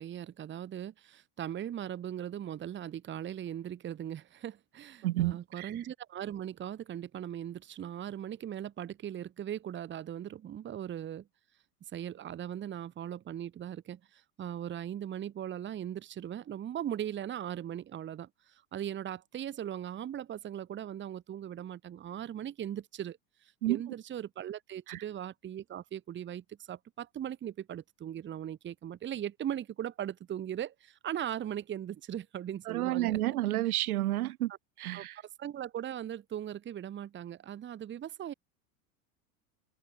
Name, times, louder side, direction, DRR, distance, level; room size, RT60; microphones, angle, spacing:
voice 1, 0.0-11.3 11.9-23.2 23.7-33.2 34.9-35.0 35.4-38.3, right 10 dB, 25° right, 1.1 m, -39 dB
voice 2, 5.0-5.7 23.6-23.8 24.9-25.0 32.7-34.5 34.8-35.2, right 16 dB, 80° right, 1.6 m, -30 dB
hypercardioid pair, 105°, 44 cm